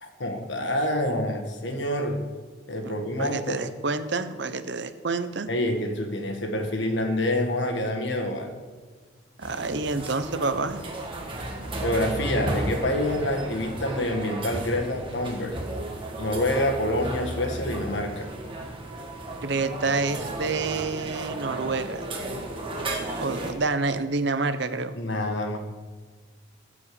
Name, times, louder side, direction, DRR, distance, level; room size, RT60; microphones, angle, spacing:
voice 1, 0.0-2.2 2.7-3.6 5.5-8.5 11.8-15.5 16.2-18.3 24.9-25.6, left 1 dB, 65° left, 4 dB, 1.6 m, -27 dB
voice 2, 3.2-5.5 9.4-10.8 19.4-22.1 23.2-24.9, right 3 dB, 60° right, 11 dB, 0.8 m, -28 dB
sound 1, 9.4-23.5, right 1 dB, 25° right, 1.6 m, -34 dB
14.5 x 5.1 x 7.0 m, 1.5 s
head